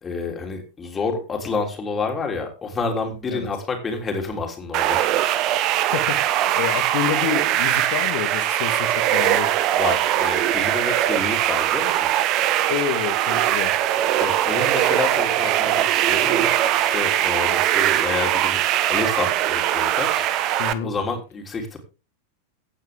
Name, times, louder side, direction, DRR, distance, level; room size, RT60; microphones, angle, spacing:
voice 1, 0.0-5.1 9.8-12.1 14.2-16.5 16.8-18.6 18.9-21.8, left 4 dB, 20° left, 3 dB, 3.4 m, -29 dB
sound 1, 4.7-20.7, right 12 dB, 40° right, 1.1 m, -21 dB
voice 2, 5.9-9.5 12.7-13.7 20.6-20.9, left 9 dB, 50° left, 9 dB, 2.1 m, -28 dB
16.0 x 8.9 x 3.7 m, 0.31 s
figure-of-eight pair, 90°, 0 cm